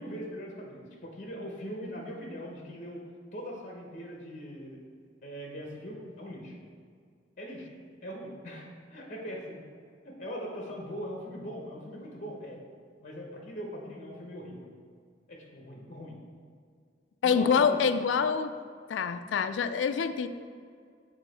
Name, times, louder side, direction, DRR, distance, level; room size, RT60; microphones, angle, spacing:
voice 1, 0.0-3.0 3.3-4.8 5.2-6.6 7.4-7.7 8.0-9.6 10.0-12.6 13.0-14.7 15.3-16.2 17.2-17.8, equal, 45° left, -1 dB, 0.9 m, -41 dB
voice 2, 17.2-18.6 18.9-20.3, left 6 dB, 80° left, 10 dB, 0.3 m, -26 dB
7.2 x 3.7 x 4.1 m, 2.1 s
head